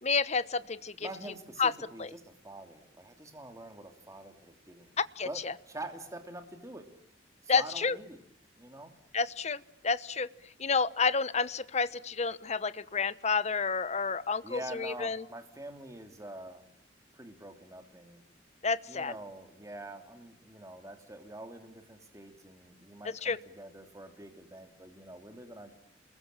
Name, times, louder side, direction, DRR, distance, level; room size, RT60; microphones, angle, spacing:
voice 1, 0.0-1.1 1.6-1.7 2.0-2.1 5.2-5.5 7.5-8.0 9.1-10.3 10.6-15.2 18.6-19.1 23.2-23.4, left 5 dB, 35° left, 15 dB, 1.0 m, -30 dB
voice 2, 1.0-5.0 5.2-6.9 7.4-8.2 8.6-8.9 14.4-16.6 17.1-18.2 18.9-25.7, right 1 dB, 15° right, 5 dB, 2.9 m, -45 dB
29.0 x 21.5 x 8.9 m, 0.74 s
head